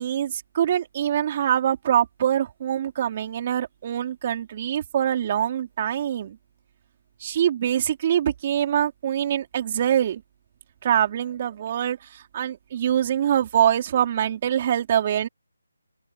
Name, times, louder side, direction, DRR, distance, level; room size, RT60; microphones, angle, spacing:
voice 1, 0.0-6.4 7.2-10.2 10.8-15.3, right 10 dB, 30° right, 4.3 m, -24 dB
open air
figure-of-eight pair, 165°, 0 cm